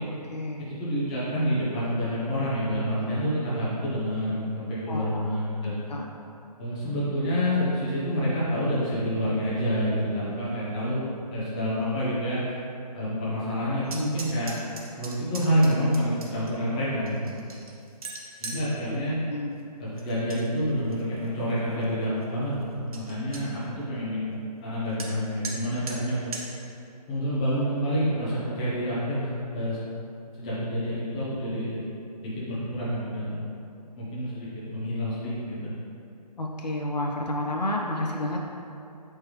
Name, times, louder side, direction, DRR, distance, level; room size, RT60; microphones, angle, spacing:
voice 1, 0.0-0.7 4.9-5.2 5.9-6.0 18.5-18.7 19.3-19.6 36.4-38.5, left 1 dB, 85° left, 0 dB, 0.6 m, -31 dB
voice 2, 0.6-5.7 6.6-11.0 11.3-12.4 12.9-14.5 15.0-17.3 18.4-19.2 20.0-24.2 24.6-26.2 27.1-29.8 30.4-31.8 32.2-33.4 34.0-35.7, equal, 10° left, -9 dB, 0.4 m, -28 dB
sound 1, 13.8-16.5 17.1-18.6 20.0-20.4 20.8-21.3 21.8-21.9 22.2-22.3 22.6-22.7 22.9-23.4 25.0-25.1 25.4-25.6 25.9-26.0 26.3-26.4, right 3 dB, 60° right, 0.7 m, -39 dB
4.4 x 3.3 x 3.0 m, 2.7 s
figure-of-eight pair, 150°, 21 cm